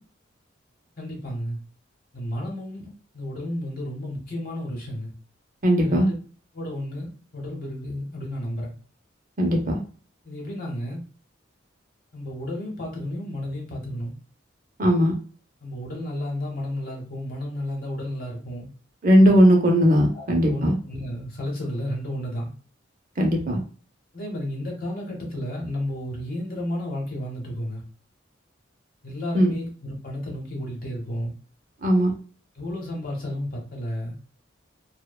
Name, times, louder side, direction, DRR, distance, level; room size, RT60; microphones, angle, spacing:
voice 1, 1.0-1.6 2.1-5.1 5.8-6.1 6.5-8.7 10.2-11.0 12.1-14.1 15.6-18.7 19.2-19.3 20.1-22.5 24.1-27.8 29.0-31.3 32.6-34.1, left 1 dB, 45° left, -1 dB, 0.9 m, -32 dB
voice 2, 5.6-6.1 9.4-9.7 14.8-15.1 19.0-20.8 23.2-23.6 29.3-29.5 31.8-32.1, equal, 40° right, 1 dB, 0.6 m, -18 dB
2.8 x 2.1 x 2.2 m, 0.40 s
head